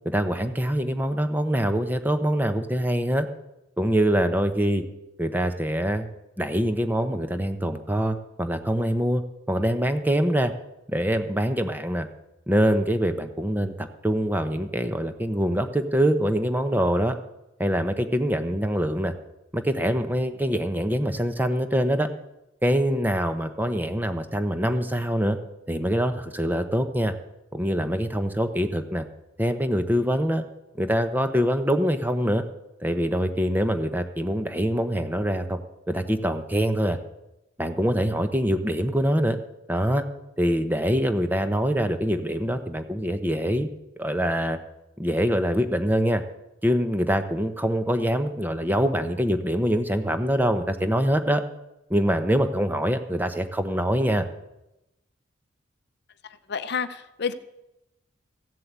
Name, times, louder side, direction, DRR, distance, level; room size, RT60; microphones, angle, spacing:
voice 1, 0.0-3.3 3.8-4.8 5.2-6.1 6.4-10.5 10.9-12.1 12.5-17.2 17.6-19.1 19.5-22.1 22.6-25.4 25.7-27.1 27.5-29.0 29.4-30.4 30.8-32.4 32.8-35.6 35.9-37.0 37.6-39.4 39.7-40.0 40.4-43.7 44.0-44.6 45.0-46.2 46.6-51.4 51.9-54.2, equal, 10° right, 8 dB, 0.9 m, -24 dB
voice 2, 56.5-57.3, left 6 dB, 60° left, 12 dB, 0.7 m, -29 dB
15.0 x 7.8 x 8.2 m, 0.92 s
head